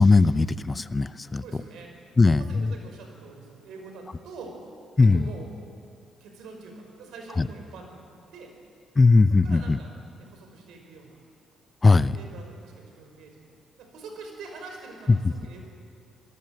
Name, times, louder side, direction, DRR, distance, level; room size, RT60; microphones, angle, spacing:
voice 1, 0.0-1.4 2.2-2.7 5.0-5.3 7.4-7.5 9.0-9.8 11.8-12.2 15.1-15.2, left 3 dB, 25° left, 15 dB, 0.6 m, -19 dB
voice 2, 1.3-1.9 2.3-4.6 5.0-5.5 6.2-8.0 8.3-8.5 9.4-9.9 10.2-11.2 12.1-13.5 13.8-15.7, right 4 dB, 85° right, 3 dB, 5.5 m, -44 dB
26.0 x 18.0 x 7.9 m, 2.4 s
cardioid pair, 90°, 0 cm